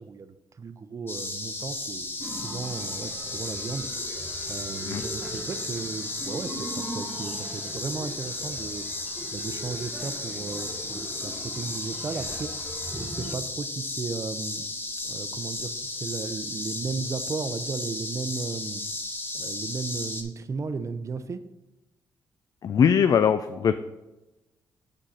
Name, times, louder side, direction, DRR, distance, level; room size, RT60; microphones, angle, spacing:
voice 1, 0.0-3.9 4.5-8.8 9.3-12.5 12.9-18.8 19.3-21.4, right 4 dB, 40° right, 11 dB, 0.6 m, -35 dB
sound 1, 1.1-20.2, left 2 dB, 30° left, 1.1 m, -34 dB
sound 2, 2.2-13.4, right 1 dB, 5° right, 0.9 m, -41 dB
voice 2, 22.6-23.8, left 7 dB, 55° left, 11 dB, 0.3 m, -21 dB
6.4 x 6.2 x 4.1 m, 1.0 s
cardioid pair, 85°, 8 cm